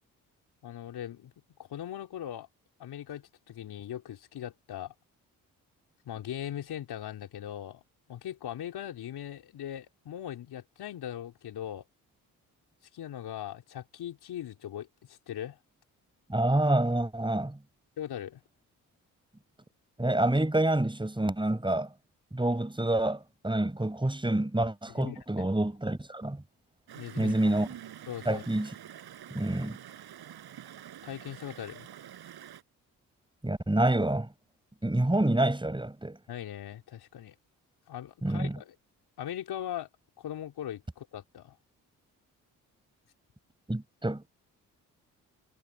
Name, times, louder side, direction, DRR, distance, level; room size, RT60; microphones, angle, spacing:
voice 1, 0.6-1.3 1.6-2.5 2.8-4.9 6.0-7.8 8.1-11.9 12.9-15.6 18.0-18.4 25.0-25.5 26.9-27.5 28.1-28.4 31.0-31.9 36.3-37.4 37.9-38.7 39.2-39.9 40.2-41.6, left 11 dB, 70° left, 4.3 m, -40 dB
voice 2, 16.3-17.6 20.0-21.9 22.3-26.4 27.2-27.7 28.3-28.7 29.3-29.8 33.4-34.3 34.8-36.2 38.2-38.6 43.7-44.3, right 1 dB, 10° right, 6.0 m, -27 dB
Stream, 26.9-32.6, right 10 dB, 70° right, 6.2 m, -47 dB
supercardioid pair, 50°, 39 cm